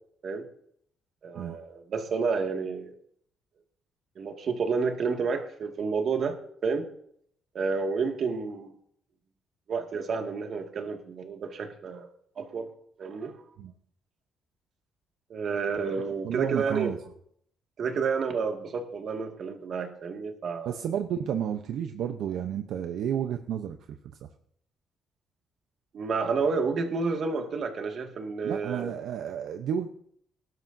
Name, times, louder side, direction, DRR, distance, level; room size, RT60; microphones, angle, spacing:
voice 1, 1.2-2.9 4.2-6.4 6.6-6.9 7.5-8.7 9.7-12.1 12.4-12.7 13.0-13.4 15.3-16.9 17.8-20.7 25.9-28.9, right 5 dB, 60° right, 4 dB, 2.0 m, -30 dB
voice 2, 16.2-17.0 20.7-24.3 27.3-27.4 28.4-29.9, right 9 dB, 80° right, 7 dB, 0.7 m, -32 dB
19.0 x 12.0 x 2.7 m, 0.68 s
cardioid pair, 90°, 0 cm